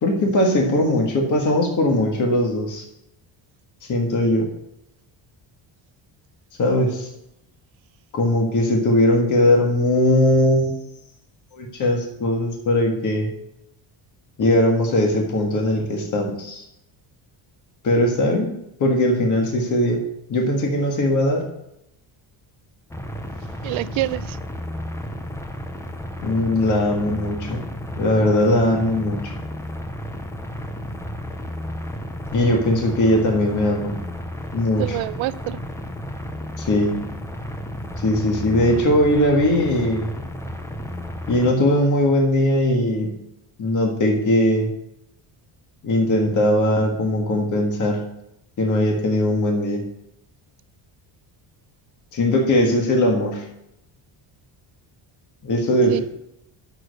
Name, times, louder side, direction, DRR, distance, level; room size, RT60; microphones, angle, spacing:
voice 1, 0.0-2.8 3.9-4.5 6.6-7.1 8.1-10.7 11.6-13.3 14.4-16.6 17.8-18.5 18.8-20.0 20.3-21.5 26.2-27.6 28.0-29.2 32.3-33.9 34.5-35.0 36.6-37.0 38.0-40.1 41.3-43.1 43.6-44.7 45.8-48.0 48.6-49.8 52.1-53.4 55.4-56.0, left 1 dB, 40° left, 1.7 m, -19 dB
sound 1, 22.9-41.5, left 1 dB, 5° left, 0.5 m, -33 dB
voice 2, 23.6-24.4 34.8-35.6 55.9-56.0, right 16 dB, 80° right, 0.6 m, -26 dB
7.9 x 6.5 x 6.3 m
cardioid pair, 170°, 47 cm